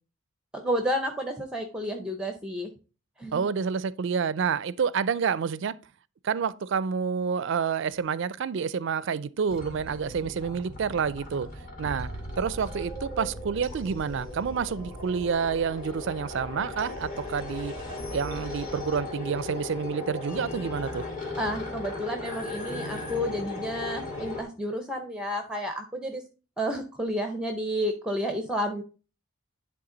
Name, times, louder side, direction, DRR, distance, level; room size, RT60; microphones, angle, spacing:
voice 1, 0.5-2.7 3.2-3.4 21.4-26.2 26.6-28.8, equal, 5° right, 0.6 m, -31 dB
voice 2, 3.3-5.8 6.2-11.5 11.8-12.1 12.4-17.7 18.1-21.0, right 6 dB, 60° right, 0.4 m, -28 dB
sound 1, 9.5-24.4, left 2 dB, 40° left, 2.6 m, -37 dB
10.5 x 3.6 x 3.8 m
head